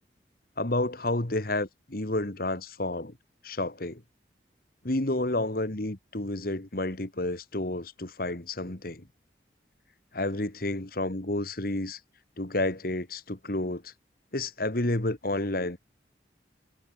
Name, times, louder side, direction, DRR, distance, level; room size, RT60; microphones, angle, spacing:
voice 1, 0.6-3.2 3.4-4.0 4.8-9.0 10.1-12.0 12.4-13.9 14.3-15.8, left 2 dB, 50° left, 1.8 m, -30 dB
head